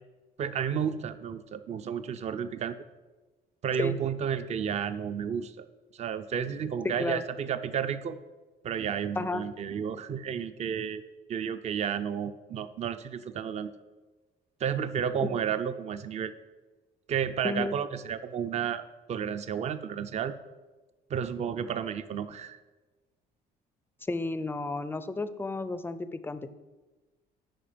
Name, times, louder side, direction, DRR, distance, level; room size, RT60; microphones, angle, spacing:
voice 1, 0.4-2.8 3.6-5.7 5.9-8.2 8.6-11.0 11.3-13.7 14.6-16.3 17.1-18.8 19.1-20.3 21.1-22.6, right 8 dB, 40° right, 12 dB, 0.5 m, -32 dB
voice 2, 17.4-17.8 24.1-26.5, left 3 dB, 15° left, 13 dB, 0.4 m, -32 dB
9.0 x 5.3 x 5.1 m, 1.2 s
cardioid pair, 110°, 17 cm